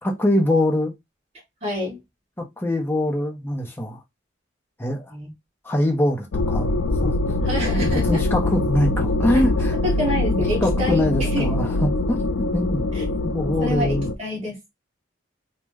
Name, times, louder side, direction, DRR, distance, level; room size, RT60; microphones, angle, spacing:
voice 1, 0.0-0.9 2.6-4.0 4.8-5.1 5.6-6.7 7.0-7.1 7.7-9.8 10.4-12.8 13.2-14.1, left 1 dB, 10° left, 0.6 m, -23 dB
voice 2, 1.6-2.0 5.1-5.3 7.4-8.2 9.8-11.5 12.9-13.0 13.6-14.7, left 1 dB, 35° right, 1.6 m, -28 dB
sound 1, 6.3-14.1, left 2 dB, 80° left, 0.4 m, -23 dB
3.0 x 2.1 x 3.4 m
head